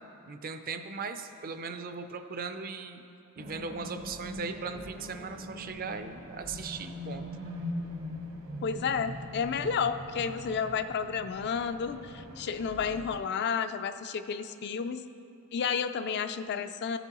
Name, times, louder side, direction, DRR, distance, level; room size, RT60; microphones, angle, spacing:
voice 1, 0.3-3.0 3.4-7.3, right 4 dB, 40° right, 8 dB, 0.4 m, -38 dB
sound 1, 3.4-13.2, left 1 dB, 70° right, 1.0 m, -42 dB
voice 2, 8.6-15.0 15.5-17.0, left 6 dB, 50° left, 10 dB, 0.3 m, -31 dB
14.5 x 8.1 x 3.0 m, 2.6 s
head